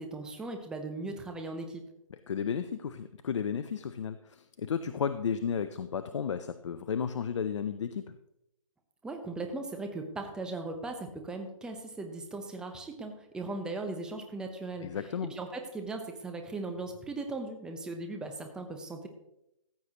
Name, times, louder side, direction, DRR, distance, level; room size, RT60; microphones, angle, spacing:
voice 1, 0.0-1.8 9.0-14.9 15.3-19.1, right 2 dB, 5° right, 4 dB, 0.7 m, -38 dB
voice 2, 2.3-8.2 14.8-15.3, left 7 dB, 60° left, 11 dB, 0.5 m, -33 dB
14.5 x 8.0 x 2.9 m, 0.84 s
figure-of-eight pair, 145°, 18 cm